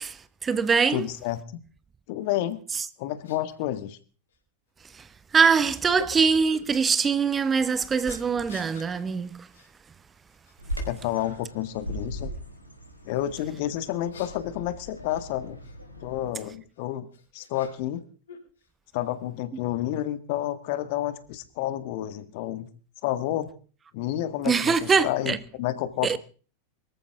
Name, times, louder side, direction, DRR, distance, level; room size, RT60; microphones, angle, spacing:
voice 1, 0.0-1.1 2.7-2.9 4.8-9.5 24.4-25.4 26.0-26.2, right 5 dB, 20° right, 0.8 m, -23 dB
voice 2, 0.9-1.4 2.1-2.6 3.0-4.0 10.8-12.3 13.0-15.6 16.0-18.1 18.9-22.7 23.0-23.5 23.9-26.2, left 13 dB, 50° left, 1.7 m, -30 dB
sound 1, 2.7-2.8 3.2-3.4 4.3-4.4 6.4-6.6 8.1-8.9 9.5-9.7 10.1-10.7 11.1-11.6 13.8-15.8 16.7-18.0 18.3-19.1, left 6 dB, 65° left, 6.0 m, -50 dB
Bird vocalization bird call bird song, 10.6-16.3, equal, 90° left, 4.7 m, -39 dB
24.0 x 14.0 x 3.7 m
figure-of-eight pair, 90°, 0 cm